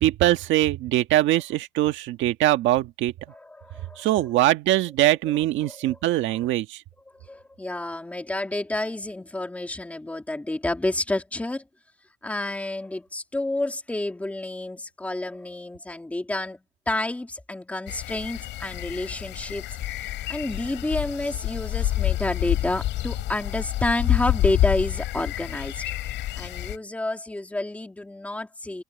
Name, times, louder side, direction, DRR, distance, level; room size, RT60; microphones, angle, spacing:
voice 1, 0.0-3.1 4.0-6.8, right 15 dB, 75° right, 1.6 m, -22 dB
voice 2, 3.3-4.2 5.0-5.3 5.6-6.2 7.1-11.6 12.2-25.8 26.4-28.8, left 2 dB, 5° left, 2.8 m, -30 dB
sound 1, 17.9-26.8, left 15 dB, 70° left, 5.2 m, -28 dB
cardioid pair, 165°, 20 cm